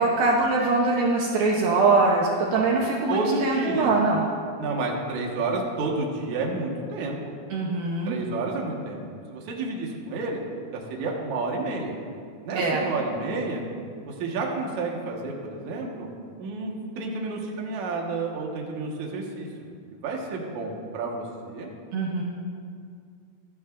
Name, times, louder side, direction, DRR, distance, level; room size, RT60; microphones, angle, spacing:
voice 1, 0.0-4.2 7.5-8.1 12.5-12.8 21.9-22.2, right 3 dB, 85° right, -2 dB, 2.1 m, -23 dB
voice 2, 3.1-3.9 4.6-7.2 8.1-9.0 9.3-10.4 10.7-12.0 12.4-13.6 14.1-16.1 16.4-19.5 19.9-21.7, right 3 dB, 60° right, -1 dB, 1.9 m, -30 dB
26.0 x 11.5 x 2.6 m, 2.3 s
omnidirectional pair, 5.7 m